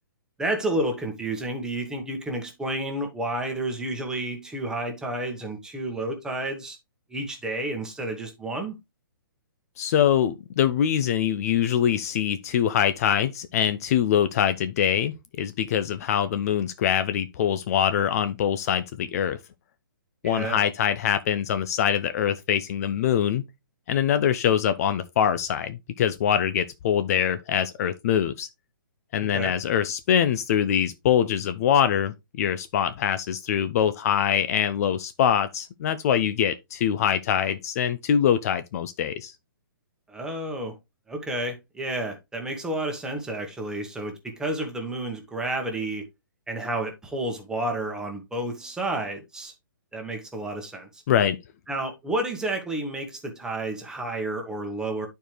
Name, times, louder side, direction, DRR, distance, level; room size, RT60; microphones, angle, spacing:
voice 1, 0.4-6.8 7.1-8.7 20.2-20.6 29.2-29.5 40.1-40.7 41.1-46.1 46.5-49.5 49.9-51.0 51.7-55.1, right 1 dB, 5° right, 1.5 m, -30 dB
voice 2, 9.8-19.4 20.2-23.4 23.9-28.5 29.1-39.3 51.1-51.4, left 9 dB, 45° left, 0.6 m, -24 dB
10.0 x 4.6 x 3.2 m
hypercardioid pair, 135°, 11 cm